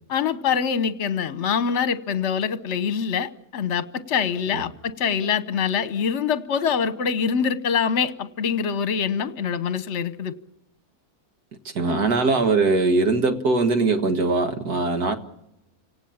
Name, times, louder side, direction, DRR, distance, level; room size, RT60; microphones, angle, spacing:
voice 1, 0.1-10.3, left 7 dB, 50° left, 14 dB, 1.2 m, -24 dB
voice 2, 11.7-15.2, right 3 dB, 85° right, 7 dB, 2.2 m, -21 dB
29.5 x 18.0 x 7.3 m, 0.89 s
omnidirectional pair, 1.6 m